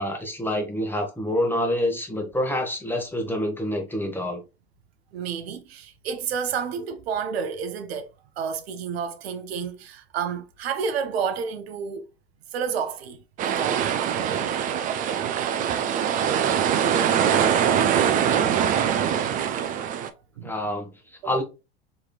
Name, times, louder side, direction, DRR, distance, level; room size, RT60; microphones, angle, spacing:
voice 1, 0.0-4.4 20.4-20.9 21.2-21.4, left 1 dB, 5° left, 0.9 m, -27 dB
voice 2, 5.1-8.1 8.4-12.1 12.5-13.2 13.4-13.9 20.4-20.5 21.2-21.4, right 6 dB, 70° right, 0.6 m, -30 dB
sound 1, 13.4-20.1, right 8 dB, 25° right, 0.3 m, -23 dB
3.7 x 3.0 x 2.3 m
hypercardioid pair, 85°, 32 cm